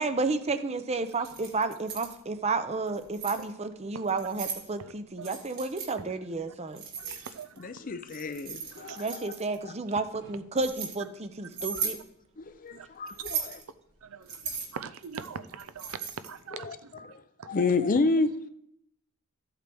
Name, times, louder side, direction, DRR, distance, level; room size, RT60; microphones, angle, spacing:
voice 1, 0.0-6.8 9.0-12.0, right 3 dB, 30° right, 0.7 m, -31 dB
Keys jangling, 1.1-2.2 2.9-3.4 4.1-4.6 5.2-5.9 6.8-7.6 8.1-9.6 10.2-10.9 11.5-12.0 13.1-13.6 14.3-16.4, right 6 dB, 45° right, 2.0 m, -37 dB
voice 2, 7.0-7.8 8.7-9.0 12.7-12.9 14.0-16.9 17.4-17.5, right 6 dB, 70° right, 0.6 m, -42 dB
voice 3, 7.6-9.3 9.6-9.7 12.4-13.6 16.5-17.2 17.5-18.3, left 3 dB, 40° left, 0.5 m, -30 dB
14.0 x 8.2 x 3.5 m
head